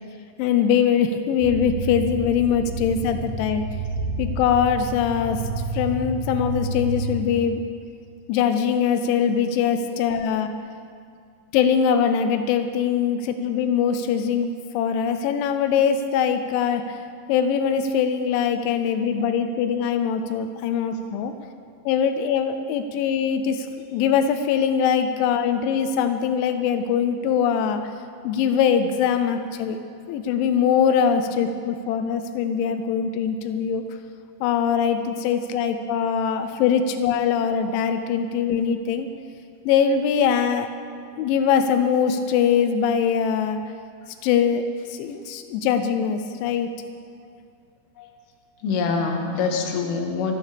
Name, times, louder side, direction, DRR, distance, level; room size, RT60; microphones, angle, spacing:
voice 1, 0.4-3.6 4.2-5.4 5.7-7.6 8.3-10.5 11.5-17.0 17.3-21.3 21.9-23.7 23.9-27.8 28.2-29.8 30.1-33.8 34.4-39.1 39.7-40.7 41.2-43.6 44.2-44.6 44.9-46.7, left 7 dB, 90° left, 8 dB, 3.1 m, -22 dB
sound 1, 1.4-7.1, right 2 dB, 90° right, 4.7 m, -30 dB
voice 2, 48.6-50.4, left 4 dB, 65° left, 2 dB, 3.1 m, -25 dB
25.0 x 14.0 x 3.4 m, 2.3 s
omnidirectional pair, 5.3 m